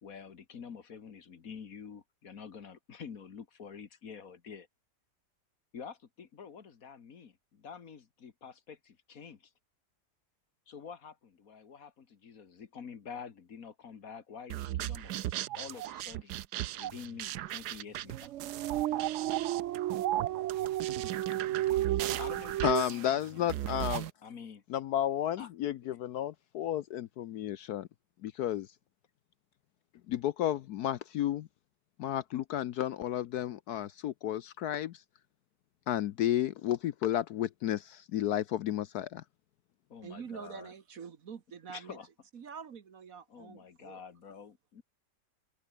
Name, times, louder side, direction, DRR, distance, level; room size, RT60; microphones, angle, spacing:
voice 1, 0.0-4.7 5.7-9.5 10.7-16.4 16.8-18.3 22.2-24.6 25.4-25.5 39.9-40.7 41.7-42.1 43.3-44.8, left 6 dB, 55° left, 1.8 m, -48 dB
sound 1, 14.5-24.1, right 13 dB, 70° right, 1.2 m, -36 dB
sound 2, 18.0-22.8, right 14 dB, 85° right, 0.6 m, -33 dB
voice 2, 22.6-24.1 24.7-27.9 28.2-28.7 30.1-31.5 32.0-35.0 35.9-39.2, left 11 dB, 70° left, 1.1 m, -32 dB
voice 3, 40.0-42.0 42.3-44.0, right 6 dB, 55° right, 1.6 m, -46 dB
open air
omnidirectional pair, 1.9 m